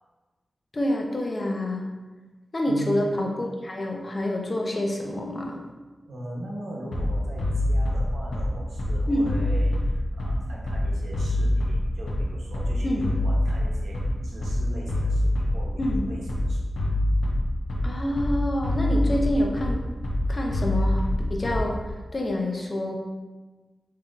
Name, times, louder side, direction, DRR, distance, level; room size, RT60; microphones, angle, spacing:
voice 1, 0.7-1.9 2.5-5.6 9.1-9.3 12.8-13.0 15.8-16.0 17.8-19.8 20.3-21.0 21.3-21.8 22.1-23.0, left 1 dB, 45° left, 0 dB, 0.7 m, -27 dB
voice 2, 2.7-3.1 6.1-16.7, right 1 dB, 90° right, -3 dB, 0.8 m, -40 dB
Bass drum, 6.9-21.9, left 1 dB, 90° left, 0.7 m, -25 dB
5.7 x 2.8 x 2.5 m, 1.3 s
cardioid pair, 55°, 0 cm